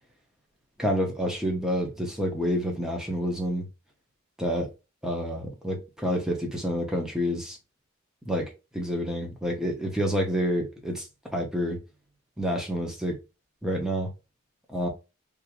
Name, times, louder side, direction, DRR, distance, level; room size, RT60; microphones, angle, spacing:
voice 1, 0.8-3.7 4.4-4.7 5.0-7.6 8.3-11.1 11.3-11.8 12.4-13.2 13.6-14.1 14.7-14.9, equal, 5° right, 1.0 m, -28 dB
3.6 x 2.8 x 3.0 m
head